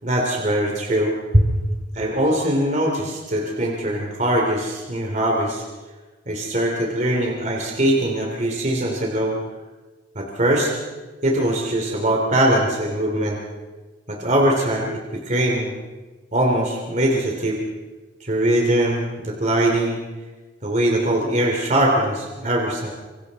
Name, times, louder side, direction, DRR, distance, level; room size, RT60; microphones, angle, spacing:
voice 1, 0.0-1.5 1.9-5.6 6.3-9.4 10.1-10.7 11.2-13.4 14.1-15.7 16.3-17.6 18.2-20.0 20.6-22.9, right 1 dB, 40° right, 0 dB, 2.9 m, -21 dB
26.0 x 25.5 x 4.1 m, 1.3 s
head